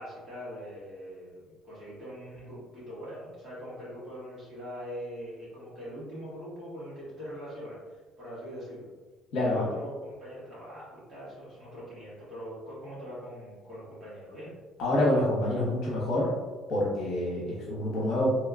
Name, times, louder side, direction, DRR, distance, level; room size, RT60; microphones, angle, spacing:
voice 1, 0.0-8.9 9.4-14.6, equal, 25° right, -9 dB, 1.5 m, -42 dB
voice 2, 9.3-9.7 14.8-16.3 16.7-18.3, left 1 dB, 60° left, -6 dB, 1.1 m, -27 dB
3.1 x 2.9 x 2.4 m, 1.3 s
cardioid pair, 175°, 0 cm